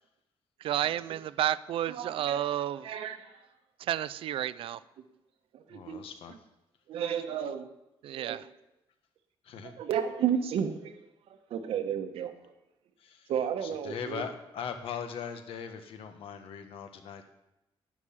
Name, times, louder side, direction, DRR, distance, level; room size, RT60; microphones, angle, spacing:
voice 1, 0.6-2.9 3.8-4.8 8.0-8.4, right 12 dB, 70° right, 17 dB, 0.5 m, -31 dB
voice 2, 1.9-3.4 5.5-6.0 6.9-7.7 8.1-8.4 9.6-11.0 11.3-12.5 13.3-14.2, right 8 dB, 90° right, 7 dB, 1.4 m, -33 dB
voice 3, 5.7-6.4 9.4-9.8 13.0-13.3 13.6-17.3, left 7 dB, 75° left, 7 dB, 1.4 m, -40 dB
11.0 x 9.9 x 7.4 m, 0.91 s
cardioid pair, 165°, 9 cm